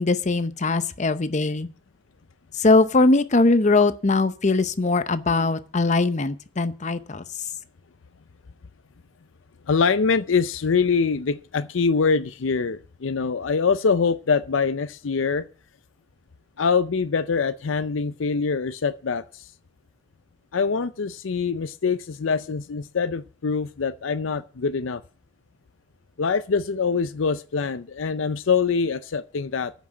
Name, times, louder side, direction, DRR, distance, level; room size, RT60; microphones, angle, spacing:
voice 1, 0.0-1.7 2.6-7.2, left 3 dB, 40° left, 0.8 m, -21 dB
voice 2, 9.7-15.5 16.6-19.5 20.5-25.0 26.2-29.7, left 5 dB, 80° left, 0.5 m, -24 dB
9.4 x 6.2 x 8.6 m
head